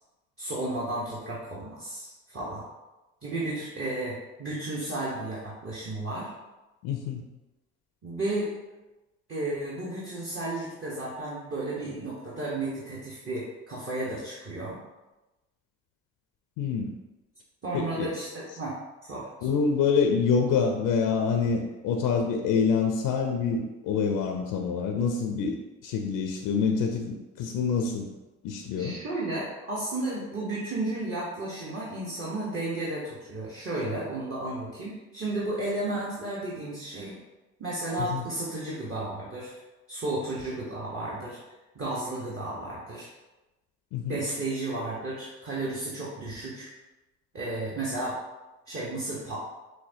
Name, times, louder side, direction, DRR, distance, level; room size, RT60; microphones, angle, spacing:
voice 1, 0.4-2.7 3.2-6.3 8.0-8.5 9.3-14.8 17.6-19.3 28.8-37.2 37.6-39.5 39.9-41.4 41.7-43.1 44.1-46.7 47.3-48.2 48.7-49.4, right 2 dB, 35° right, -6 dB, 1.1 m, -33 dB
voice 2, 6.8-7.2 10.6-10.7 16.6-16.9 17.7-18.1 18.5-18.6 19.4-28.1 28.4-29.0 38.0-38.3 43.9-44.3, left 5 dB, 55° left, 3 dB, 0.5 m, -26 dB
6.2 x 2.1 x 2.7 m, 1.1 s
figure-of-eight pair, 45°, 40 cm